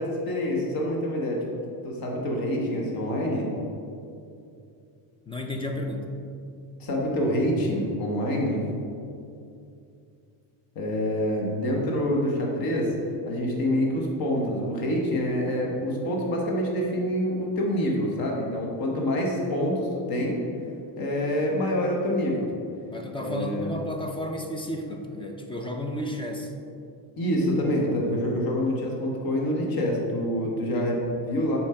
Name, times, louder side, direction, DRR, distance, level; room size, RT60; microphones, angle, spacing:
voice 1, 0.0-1.4 1.8-3.5 6.8-8.7 10.7-12.9 13.3-20.5 21.0-22.5 23.1-23.7 27.2-31.6, equal, 45° left, -1 dB, 1.3 m, -26 dB
voice 2, 5.3-6.1 22.9-26.5, left 1 dB, 15° left, 3 dB, 0.3 m, -32 dB
7.3 x 4.6 x 4.4 m, 2.6 s
cardioid pair, 140°, 49 cm